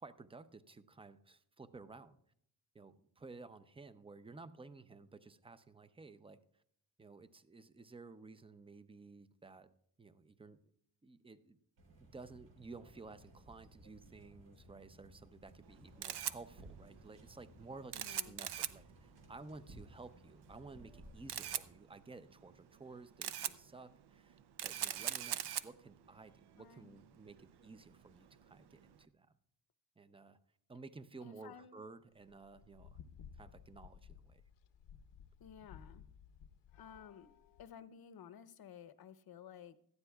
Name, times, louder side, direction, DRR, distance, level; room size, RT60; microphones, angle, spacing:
voice 1, 0.0-2.2 2.7-6.4 7.0-9.7 10.0-10.6 11.0-11.6 12.0-29.3 30.0-30.4 30.7-33.0 33.3-34.4, right 3 dB, 15° right, 12 dB, 0.5 m, -54 dB
sound 1, 11.8-21.7, right 1 dB, 85° right, 3.3 m, -59 dB
Camera, 15.6-29.0, right 11 dB, 70° right, 0.7 m, -44 dB
voice 2, 17.9-18.4 26.6-27.0 31.2-31.8 35.4-36.0 36.7-37.3 37.6-39.8, left 8 dB, 60° left, 14 dB, 0.8 m, -54 dB
sound 2, 32.2-37.7, left 7 dB, 90° left, 0.9 m, -57 dB
17.5 x 13.0 x 2.3 m, 0.70 s
cardioid pair, 115°, 42 cm